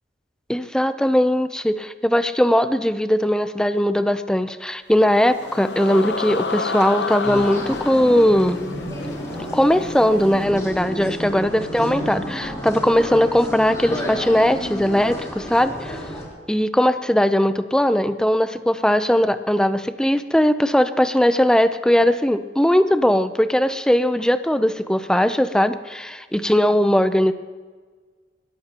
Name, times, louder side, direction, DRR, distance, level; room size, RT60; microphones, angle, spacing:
voice 1, 0.5-8.6 9.5-16.0 16.5-27.3, equal, 5° left, 11 dB, 0.5 m, -19 dB
sound 1, 4.9-10.5, left 4 dB, 70° left, 0.7 m, -31 dB
sound 2, 7.2-16.3, equal, 20° left, 3.7 m, -31 dB
21.5 x 15.0 x 2.9 m, 1.5 s
head